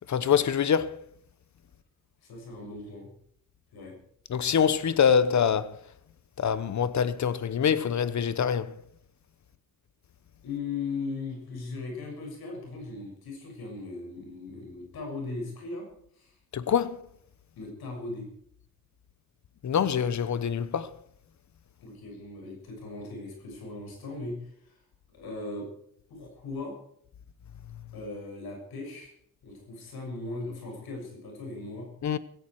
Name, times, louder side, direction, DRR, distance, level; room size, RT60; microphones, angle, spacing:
voice 1, 0.1-1.0 4.3-5.7 6.4-8.7 16.5-17.0 19.6-20.9 32.0-32.2, left 7 dB, 50° left, 1.0 m, -25 dB
voice 2, 2.2-3.1 3.7-3.9 10.4-15.9 16.1-16.4 17.6-18.3 21.8-24.8 25.1-25.7 26.1-26.7 27.9-29.1 29.4-31.9, left 3 dB, 90° left, 6.7 m, -38 dB
16.5 x 16.5 x 4.7 m
cardioid pair, 110°, 36 cm